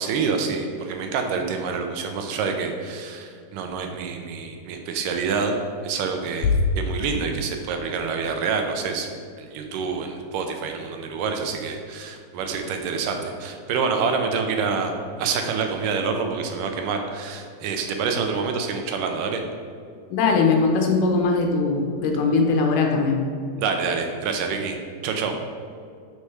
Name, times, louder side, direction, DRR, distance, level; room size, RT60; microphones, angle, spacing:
voice 1, 0.0-5.6 5.8-6.5 6.8-9.1 9.4-14.9 15.2-19.4 23.6-24.8 25.0-25.4, right 5 dB, 80° right, 4 dB, 2.3 m, -27 dB
voice 2, 20.1-23.2, left 4 dB, 75° left, 2 dB, 2.4 m, -20 dB
8.2 x 4.8 x 5.6 m, 2.2 s
omnidirectional pair, 3.9 m